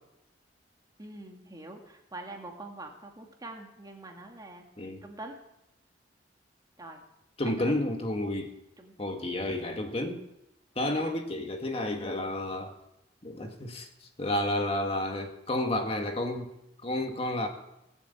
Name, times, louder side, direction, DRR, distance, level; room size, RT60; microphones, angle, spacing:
voice 1, 1.0-4.7 5.0-5.3 6.8-7.0 7.5-7.7 8.8-8.9 10.8-11.1, right 2 dB, 20° right, 2 dB, 2.1 m, -44 dB
voice 2, 7.4-8.5 9.0-10.3 10.8-12.7 13.2-13.9 14.2-16.5 16.8-17.5, left 1 dB, 35° left, 4 dB, 1.8 m, -31 dB
19.0 x 8.4 x 8.4 m, 0.85 s
head